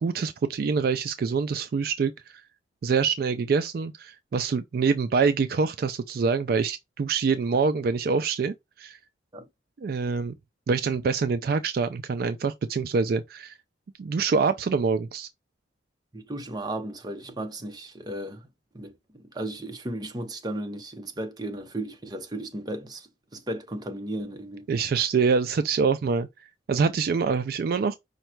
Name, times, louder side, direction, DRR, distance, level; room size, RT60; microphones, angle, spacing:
voice 1, 0.0-2.4 2.8-9.0 9.8-10.3 10.7-13.5 14.0-15.3 24.7-27.9, right 5 dB, 55° right, 0.3 m, -25 dB
voice 2, 16.1-18.4 18.7-24.7, right 1 dB, 20° right, 0.7 m, -35 dB
5.3 x 2.2 x 4.4 m
head